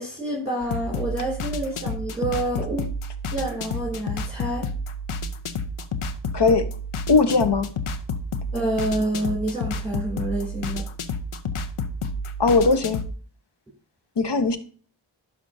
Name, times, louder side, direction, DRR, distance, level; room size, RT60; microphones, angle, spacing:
voice 1, 0.0-2.9 3.3-4.7 8.5-10.8, right 1 dB, 5° left, -4 dB, 2.8 m, -28 dB
sound 1, 0.6-13.1, left 2 dB, 90° left, 0.7 m, -30 dB
voice 2, 6.3-6.7 7.1-7.7 12.4-13.0 14.2-14.6, left 4 dB, 55° left, 9 dB, 0.9 m, -19 dB
11.0 x 5.3 x 2.6 m, 0.41 s
wide cardioid pair, 50°, 49 cm